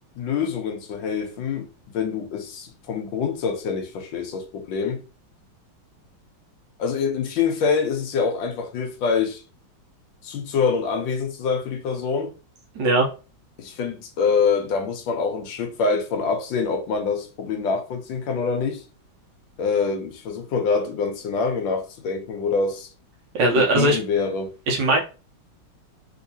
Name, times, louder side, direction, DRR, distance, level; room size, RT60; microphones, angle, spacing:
voice 1, 0.2-1.7 1.9-5.0 6.8-9.4 10.2-12.3 13.6-18.8 19.6-22.9 23.6-24.5, left 5 dB, 75° left, 1.4 m, -25 dB
voice 2, 12.7-13.1 23.3-24.0 24.7-25.0, right 1 dB, 70° right, 1.4 m, -19 dB
3.5 x 2.9 x 2.7 m
omnidirectional pair, 2.2 m